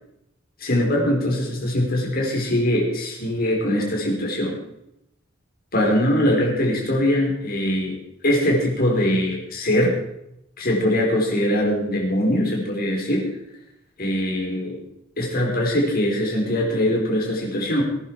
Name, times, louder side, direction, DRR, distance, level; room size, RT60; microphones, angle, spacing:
voice 1, 0.6-4.6 5.7-7.9 8.2-9.9 10.6-13.3 14.0-14.8 15.2-17.8, left 1 dB, 50° left, -1 dB, 4.7 m, -22 dB
20.0 x 10.5 x 4.9 m, 0.80 s
head